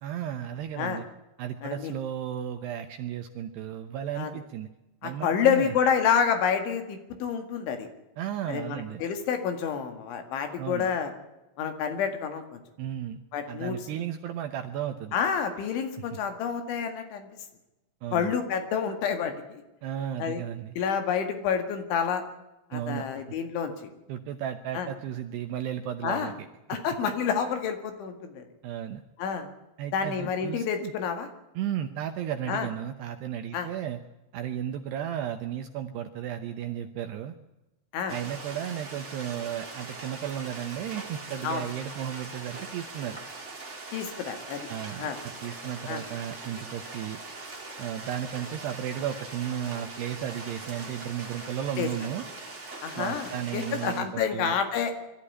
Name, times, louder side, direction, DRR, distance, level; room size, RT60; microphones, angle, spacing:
voice 1, 0.0-1.1 1.4-4.7 5.0-5.7 8.2-9.0 10.6-10.9 12.8-13.2 13.5-15.2 16.1-16.2 18.0-18.3 19.8-20.7 22.7-23.1 24.1-26.3 26.7-26.8 28.6-29.0 29.8-30.9 31.6-34.0 34.3-37.3 38.1-43.2 44.7-47.2 47.8-52.3 53.0-54.6, right 10 dB, 75° right, 7 dB, 2.5 m, -34 dB
voice 2, 1.6-1.9 4.2-4.3 5.0-7.9 8.5-11.1 11.6-12.6 13.3-13.8 15.1-17.3 18.1-19.6 20.2-20.4 20.8-22.2 22.7-23.9 24.7-24.9 26.0-26.3 26.7-28.5 29.2-29.5 29.9-31.3 32.5-32.7 33.5-33.7 37.9-38.2 41.4-41.7 43.9-44.7 45.0-45.2 45.9-46.0 51.8-51.9 52.8-54.9, left 7 dB, 70° left, 7 dB, 4.2 m, -28 dB
sound 1, 38.1-54.0, right 3 dB, 20° right, 2.0 m, -41 dB
23.0 x 13.5 x 9.9 m, 1.0 s
omnidirectional pair, 5.8 m